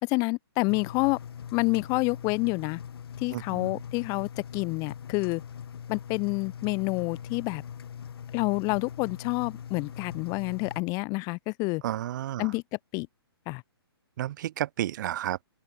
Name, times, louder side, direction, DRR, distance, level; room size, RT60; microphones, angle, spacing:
voice 1, 0.0-1.2 1.5-2.8 3.2-5.4 5.9-7.6 8.3-11.8 12.4-12.6 12.9-13.1 13.5-13.6, left 27 dB, 25° left, 1.2 m, -28 dB
Engine, 0.7-10.8, left 8 dB, 65° left, 3.8 m, -41 dB
voice 2, 3.3-3.8 11.8-12.5 14.2-15.4, right 13 dB, 45° right, 1.2 m, -31 dB
open air
hypercardioid pair, 145°, 13 cm